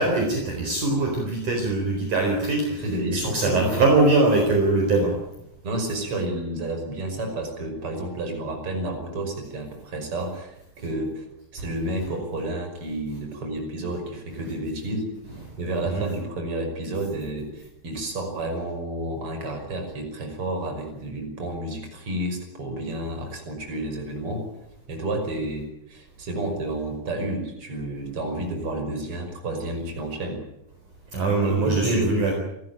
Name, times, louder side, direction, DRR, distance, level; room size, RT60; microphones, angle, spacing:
voice 1, 0.0-5.1 15.8-16.0 31.1-32.3, right 2 dB, 50° right, 1 dB, 5.4 m, -22 dB
voice 2, 2.8-3.9 5.6-11.2 11.5-15.1 15.6-24.4 24.9-30.4 31.4-32.2, right 1 dB, 30° right, 4 dB, 6.3 m, -30 dB
29.5 x 14.5 x 9.1 m, 0.84 s
omnidirectional pair, 4.9 m